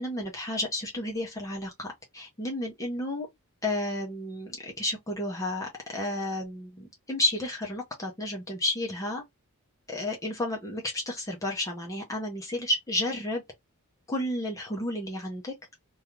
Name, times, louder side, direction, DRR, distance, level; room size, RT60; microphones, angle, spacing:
voice 1, 0.0-3.3 3.6-9.2 9.9-13.4 14.1-15.5, left 1 dB, 15° left, 0.6 m, -32 dB
2.4 x 2.3 x 2.9 m
head